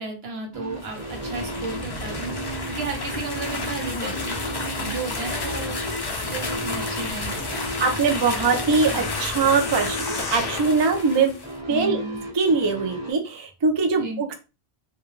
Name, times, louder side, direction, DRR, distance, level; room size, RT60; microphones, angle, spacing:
voice 1, 0.0-4.3 4.8-5.8 6.1-7.7 11.7-12.2 13.9-14.2, right 3 dB, 70° right, 2 dB, 1.1 m, -34 dB
sound 1, 0.5-13.1, right 1 dB, 15° right, 1.1 m, -35 dB
sound 2, 0.7-11.5, left 3 dB, 35° left, 0.4 m, -31 dB
sound 3, 7.2-10.8 11.4-11.5, left 4 dB, 65° left, 0.8 m, -36 dB
voice 2, 7.8-11.3 11.7-12.0 12.3-14.3, right 4 dB, 45° right, 3 dB, 0.3 m, -22 dB
2.2 x 2.2 x 3.0 m, 0.29 s
omnidirectional pair, 1.1 m